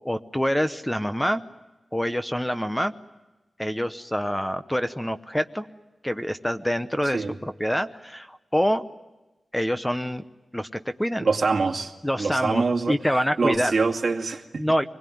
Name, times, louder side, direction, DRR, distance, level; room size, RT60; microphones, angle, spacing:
voice 1, 0.0-1.4 1.9-2.9 3.6-5.7 6.0-8.8 9.5-10.2 10.5-11.3 12.0-13.7 14.6-14.8, equal, 5° left, 9 dB, 0.8 m, -26 dB
voice 2, 11.2-11.9 12.2-12.9 13.4-14.6, right 4 dB, 50° right, 2 dB, 2.3 m, -24 dB
25.5 x 21.0 x 9.4 m, 1.1 s
wide cardioid pair, 110°, 0 cm